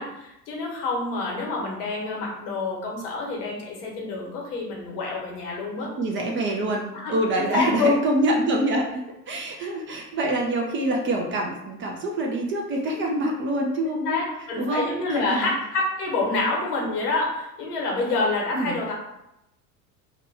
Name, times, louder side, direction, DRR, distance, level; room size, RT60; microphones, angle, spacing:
voice 1, 0.0-5.9 7.0-8.0 14.1-18.9, left 3 dB, 70° left, -2 dB, 1.2 m, -27 dB
voice 2, 5.8-14.2 14.5-15.5 16.4-16.5 18.5-18.8, right 1 dB, 25° right, 1 dB, 0.4 m, -26 dB
2.9 x 2.2 x 4.1 m, 0.87 s
figure-of-eight pair, 75°, 48 cm